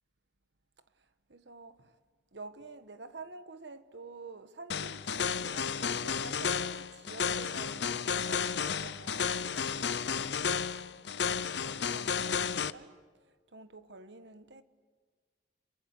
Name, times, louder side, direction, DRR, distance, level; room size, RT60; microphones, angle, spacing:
voice 1, 1.3-2.0 2.3-11.1 11.5-13.0 13.2-14.6, right 3 dB, 70° right, 1.3 m, -49 dB
sound 1, 4.7-12.7, left 6 dB, 65° left, 0.7 m, -32 dB
28.0 x 23.5 x 8.2 m
head